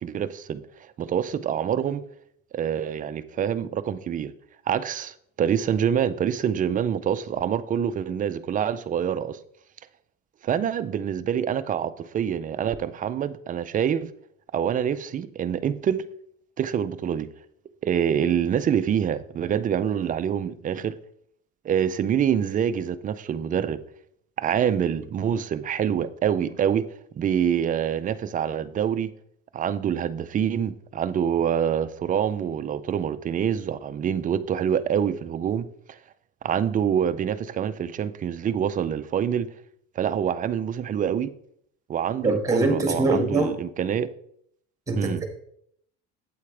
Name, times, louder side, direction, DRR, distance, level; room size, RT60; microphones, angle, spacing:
voice 1, 0.0-0.6 1.0-2.0 2.5-4.3 4.7-9.4 10.4-14.1 14.5-16.0 16.6-17.3 17.8-21.0 21.6-23.8 24.4-26.9 27.2-29.1 29.5-36.0 36.4-39.5 40.0-41.3 41.9-44.1 45.0-45.2, right 8 dB, 25° right, 13 dB, 0.4 m, -26 dB
voice 2, 42.2-43.5 44.9-45.3, right 2 dB, 10° right, 4 dB, 1.7 m, -23 dB
8.6 x 8.3 x 3.3 m, 0.69 s
cardioid pair, 135°, 30 cm